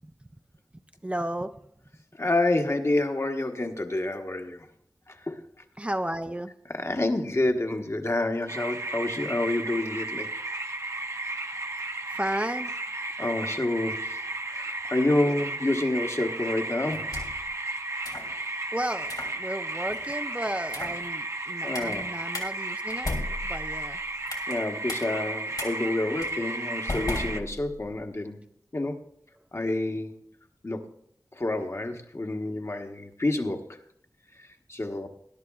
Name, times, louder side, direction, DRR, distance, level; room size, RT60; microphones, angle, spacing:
voice 1, 1.0-1.5 5.8-6.5 12.1-12.7 18.7-23.1 23.4-24.0, right 1 dB, 20° right, 7 dB, 0.5 m, -33 dB
voice 2, 2.2-4.7 5.1-5.4 6.7-10.4 13.2-14.2 14.5-17.1 21.6-22.1 24.5-28.4 28.7-29.0 29.5-30.2 30.6-31.0 31.3-33.8 34.7-35.1, left 2 dB, 45° left, 4 dB, 1.1 m, -28 dB
sound 1, 8.5-27.4, right 2 dB, 45° right, 0.8 m, -34 dB
sound 2, 16.9-17.5 18.0-18.3 19.0-19.3 19.9-20.2 20.7-21.0 21.7-22.0 22.3-22.5 22.9-24.6 24.9-25.0 25.6-25.7 26.2-26.4 26.9-27.9, left 2 dB, 75° left, 3.0 m, -35 dB
20.5 x 11.0 x 2.4 m, 0.69 s
wide cardioid pair, 50°, 7 cm